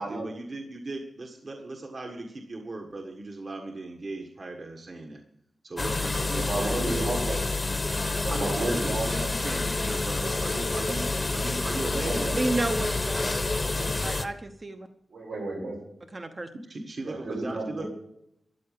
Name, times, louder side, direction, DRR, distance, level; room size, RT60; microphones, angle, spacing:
voice 1, 0.0-5.2 5.6-7.2 8.3-12.5 16.7-17.9, right 2 dB, 45° right, 2 dB, 1.6 m, -38 dB
sound 1, 5.8-14.3, left 3 dB, 25° left, 1.0 m, -28 dB
voice 2, 6.3-7.5 8.0-9.3 9.7-9.8 10.7-10.8 11.9-12.4 13.6-14.1 15.1-15.8 17.0-17.9, right 2 dB, 85° right, -1 dB, 6.9 m, -33 dB
voice 3, 12.3-13.3 14.0-14.9 16.1-16.5, right 2 dB, 30° right, 6 dB, 0.9 m, -31 dB
13.5 x 9.7 x 7.6 m, 0.77 s
wide cardioid pair, 155°, 0 cm